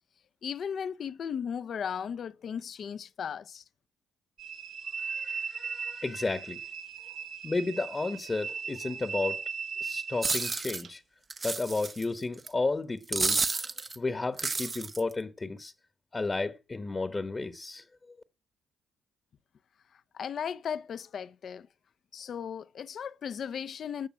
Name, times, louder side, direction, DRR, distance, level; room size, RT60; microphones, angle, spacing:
voice 1, 0.4-3.6 20.1-21.7 22.1-24.1, left 7 dB, 55° left, 0.7 m, -36 dB
sound 1, 4.4-10.9, right 6 dB, 60° right, 1.3 m, -38 dB
voice 2, 5.0-6.6 7.4-9.4 9.8-11.0 11.4-13.6 14.0-15.7 16.1-17.8, left 3 dB, 25° left, 1.1 m, -32 dB
sound 2, 10.2-10.8 11.3-12.0 12.5-12.6 13.1-14.0 14.4-15.1, right 3 dB, 30° right, 0.8 m, -30 dB
13.0 x 6.6 x 7.5 m
cardioid pair, 90°, 0 cm